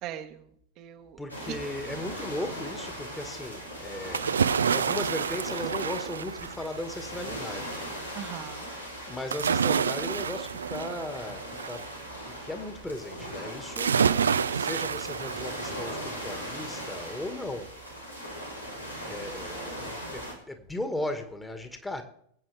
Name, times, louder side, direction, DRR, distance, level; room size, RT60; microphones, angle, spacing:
voice 1, 0.0-0.4 0.8-1.6 8.1-8.7, right 11 dB, 40° right, 1.1 m, -40 dB
voice 2, 1.2-4.3 4.7-7.7 9.1-11.9 12.2-17.8 19.0-22.0, left 1 dB, 10° left, 1.7 m, -37 dB
sound 1, 1.3-20.3, equal, 90° left, 3.1 m, -39 dB
sound 2, 4.1-7.0 9.3-11.9 13.8-16.0 16.5-16.6, right 6 dB, 70° right, 0.5 m, -28 dB
23.0 x 8.3 x 3.4 m
figure-of-eight pair, 90°, 0 cm